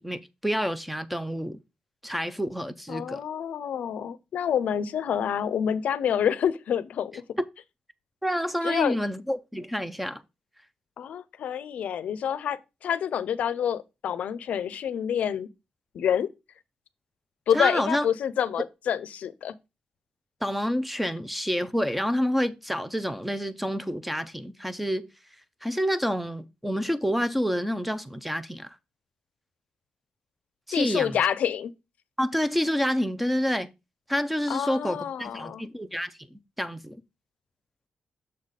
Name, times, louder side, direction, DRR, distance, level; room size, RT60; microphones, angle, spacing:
voice 1, 0.0-1.6 2.0-3.2 8.2-10.2 17.5-18.1 20.4-25.1 25.6-28.8 30.7-31.2 32.2-33.7 34.1-37.0, equal, 5° right, 0.4 m, -28 dB
voice 2, 2.9-7.2 8.6-9.0 11.0-15.5 15.9-16.3 17.5-19.5 30.7-31.7 34.5-35.7, left 8 dB, 75° left, 0.5 m, -28 dB
6.7 x 4.1 x 4.8 m
wide cardioid pair, 145°, 3 cm